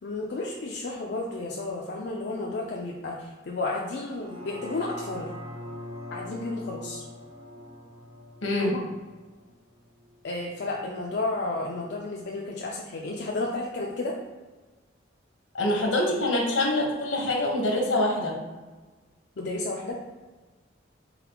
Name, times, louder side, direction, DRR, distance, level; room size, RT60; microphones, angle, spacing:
voice 1, 0.0-5.3 6.1-7.0 8.6-8.8 10.2-14.2 15.6-16.0 19.4-20.0, left 2 dB, 60° left, -2 dB, 0.4 m, -32 dB
sound 1, 4.0-10.2 10.6-10.7, left 1 dB, 75° right, 0.9 m, -42 dB
voice 2, 8.4-8.8 15.5-18.4, left 1 dB, 85° left, 0 dB, 1.0 m, -25 dB
4.0 x 3.7 x 2.9 m, 1.3 s
head